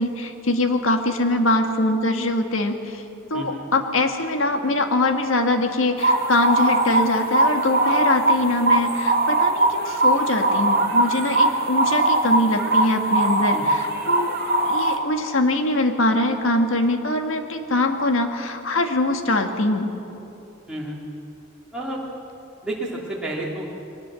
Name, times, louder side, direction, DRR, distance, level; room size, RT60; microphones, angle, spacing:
voice 1, 0.0-3.0 3.3-14.4 14.6-19.9, left 2 dB, 75° left, 6 dB, 1.7 m, -23 dB
sound 1, 6.0-15.0, right 2 dB, 45° right, 2.2 m, -20 dB
voice 2, 20.7-21.0 21.7-22.0 22.6-23.7, right 1 dB, 5° right, -5 dB, 2.9 m, -30 dB
22.0 x 19.0 x 7.6 m, 2.9 s
head